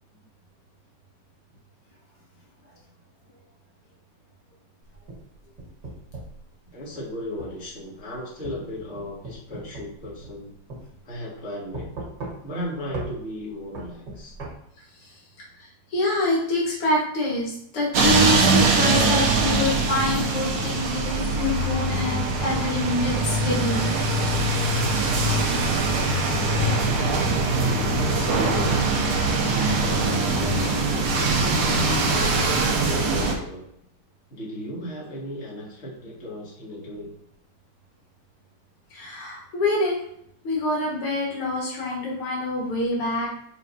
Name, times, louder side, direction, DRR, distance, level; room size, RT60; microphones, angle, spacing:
sound 1, 4.9-6.4 7.4-7.6 8.4-10.4 10.7-10.8 11.7-12.6 12.9-13.1 13.8-14.5, right 2 dB, 55° right, 2.0 m, -37 dB
voice 1, 6.7-10.5 11.0-11.9 12.4-14.3 28.0-29.2 29.7-33.7 34.3-37.1, left 1 dB, 30° left, -6 dB, 2.3 m, -36 dB
voice 2, 15.6-24.1 38.9-39.9 40.4-43.3, left 2 dB, 85° left, -3 dB, 2.7 m, -26 dB
sound 2, 17.9-33.3, right 3 dB, 75° right, 1.9 m, -22 dB
8.6 x 4.2 x 2.8 m, 0.72 s
omnidirectional pair, 2.4 m